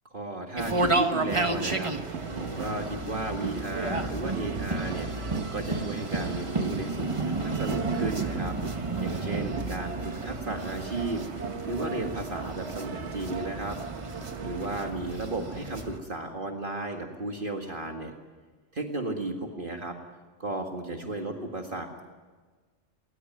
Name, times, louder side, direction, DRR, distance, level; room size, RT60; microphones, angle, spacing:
voice 1, 0.1-11.2 11.7-13.8 14.4-18.1 18.7-20.0 20.4-22.0, right 2 dB, 45° right, 3 dB, 2.0 m, -34 dB
sound 1, 0.6-16.0, right 3 dB, 25° right, 1.3 m, -32 dB
sound 2, 1.5-14.9, right 6 dB, 70° right, 1.3 m, -40 dB
20.0 x 20.0 x 9.4 m, 1.4 s
omnidirectional pair, 1.2 m